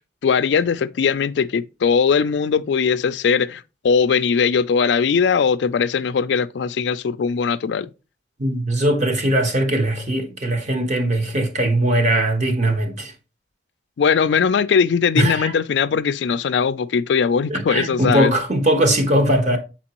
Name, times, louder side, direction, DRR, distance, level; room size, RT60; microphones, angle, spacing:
voice 1, 0.2-7.9 14.0-18.3, left 6 dB, 70° left, 0.4 m, -20 dB
voice 2, 8.4-13.1 15.2-15.5 17.5-19.6, right 1 dB, 40° right, 1.1 m, -20 dB
7.5 x 4.4 x 3.0 m
head